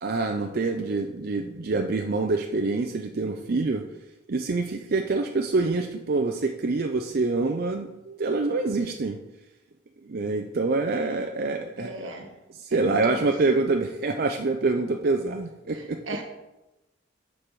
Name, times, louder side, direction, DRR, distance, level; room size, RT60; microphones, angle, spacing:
voice 1, 0.0-3.8 4.3-9.2 10.1-12.1 12.6-16.0, right 3 dB, 50° right, 5 dB, 0.5 m, -26 dB
voice 2, 11.8-12.3 12.7-13.3 15.7-16.2, equal, 85° right, 4 dB, 1.4 m, -37 dB
7.0 x 4.7 x 6.8 m, 0.99 s
head